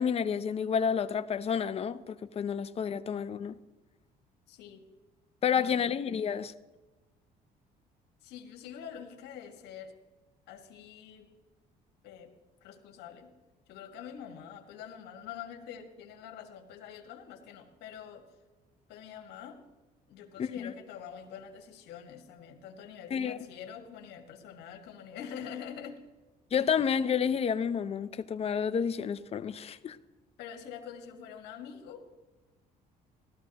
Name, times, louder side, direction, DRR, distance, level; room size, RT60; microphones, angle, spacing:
voice 1, 0.0-3.6 5.4-6.5 20.4-20.7 23.1-23.4 26.5-30.0, left 7 dB, 35° left, 0.6 m, -30 dB
voice 2, 4.5-4.9 5.5-5.8 8.2-9.9 10.5-11.3 12.0-12.3 12.6-13.3 13.7-18.2 18.9-19.6 20.1-26.0 30.4-32.1, left 8 dB, 85° left, 1.7 m, -45 dB
16.0 x 13.0 x 2.9 m
cardioid pair, 110°, 17 cm